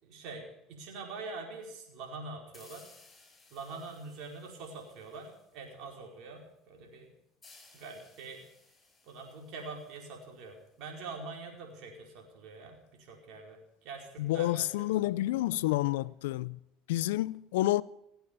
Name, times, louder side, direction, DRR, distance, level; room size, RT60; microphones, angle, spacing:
voice 1, 0.0-2.9 3.5-7.1 7.7-8.4 9.0-15.7, right 3 dB, 65° right, 4.6 m, -45 dB
sound 1, 2.5-5.9 7.4-10.9, left 3 dB, 25° left, 6.9 m, -60 dB
voice 2, 14.2-16.6 16.9-17.8, left 16 dB, 85° left, 0.5 m, -29 dB
18.0 x 8.2 x 8.6 m
supercardioid pair, 85°, 0 cm